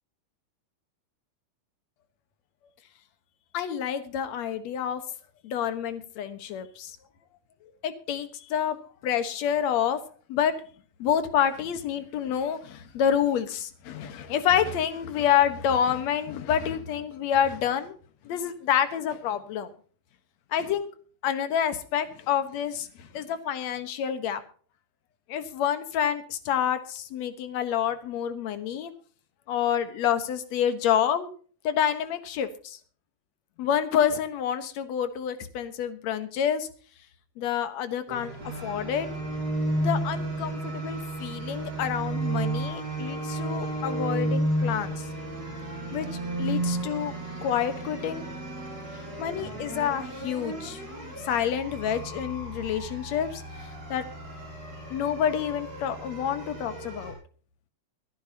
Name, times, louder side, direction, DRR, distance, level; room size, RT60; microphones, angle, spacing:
voice 1, 3.5-5.0 5.4-7.0 7.8-8.8 9.0-10.0 10.3-10.6 11.0-18.0 18.2-19.7 20.5-20.9 21.2-24.4 25.3-28.9 29.5-31.3 31.6-32.8 33.6-36.7 37.4-38.3 38.6-39.1 39.8-45.1 45.9-46.1 46.4-48.3 49.2-50.8 51.2-53.4 53.9-54.1 54.9-57.2, left 9 dB, 65° left, 11 dB, 2.3 m, -28 dB
sound 1, 38.1-57.1, right 2 dB, 55° right, 6.9 m, -33 dB
24.5 x 10.5 x 2.8 m, 0.43 s
omnidirectional pair, 3.6 m